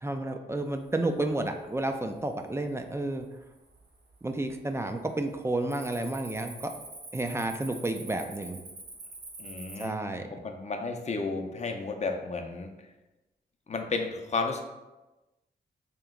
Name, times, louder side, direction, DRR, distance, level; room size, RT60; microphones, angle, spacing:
voice 1, 0.0-3.2 4.2-6.7 7.1-8.6 9.8-10.3, right 2 dB, 15° right, 5 dB, 0.3 m, -31 dB
Cricket, 0.9-1.3 1.8-2.2 2.8-2.9 3.5-4.1 4.4-4.7 5.0-9.9, right 2 dB, 75° right, 1.0 m, -45 dB
voice 2, 9.4-10.0 10.3-12.7 13.7-14.6, left 3 dB, 40° left, 5 dB, 0.5 m, -32 dB
3.2 x 3.0 x 3.7 m, 1.1 s
cardioid pair, 70°, 18 cm